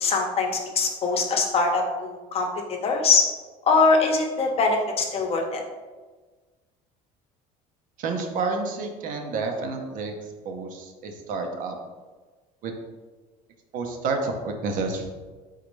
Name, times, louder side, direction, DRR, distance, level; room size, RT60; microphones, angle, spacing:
voice 1, 0.0-2.5 2.8-3.2 3.7-5.6, left 4 dB, 40° left, 3 dB, 0.8 m, -22 dB
voice 2, 8.0-10.2 10.4-11.8 12.6-12.8 13.7-15.1, right 4 dB, 60° right, 4 dB, 0.7 m, -29 dB
4.1 x 3.8 x 3.1 m, 1.3 s
cardioid pair, 120°, 16 cm